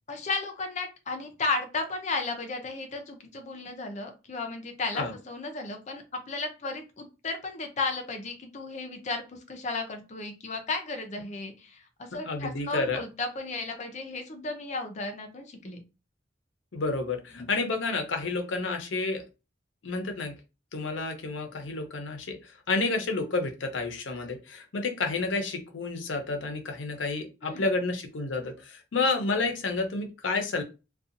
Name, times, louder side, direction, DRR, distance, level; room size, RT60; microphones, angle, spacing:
voice 1, 0.1-15.8 27.4-27.8, left 3 dB, 40° left, 5 dB, 0.5 m, -34 dB
voice 2, 12.1-13.0 16.7-19.2 19.8-20.4 20.7-30.6, left 3 dB, 85° left, 5 dB, 0.6 m, -30 dB
2.6 x 2.3 x 2.5 m, 0.29 s
head